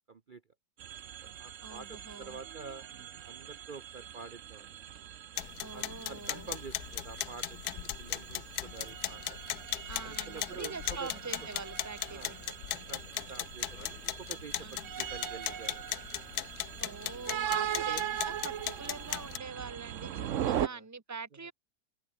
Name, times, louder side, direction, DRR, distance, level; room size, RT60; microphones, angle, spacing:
voice 1, 0.1-0.4 1.2-2.9 3.2-4.7 5.3-5.4 5.7-9.4 10.0-11.1 12.1-12.3 12.7-16.0 17.0-17.1 17.5-18.0 20.4-20.8, right 4 dB, 35° right, 1.0 m, -48 dB
sound 1, 0.8-20.7, right 10 dB, 60° right, 1.1 m, -40 dB
voice 2, 1.6-2.4 5.6-6.5 9.9-12.5 14.6-14.9 16.4-21.5, right 4 dB, 10° right, 1.2 m, -44 dB
sound 2, 5.4-19.4, left 13 dB, 80° left, 1.2 m, -38 dB
open air
omnidirectional pair, 1.6 m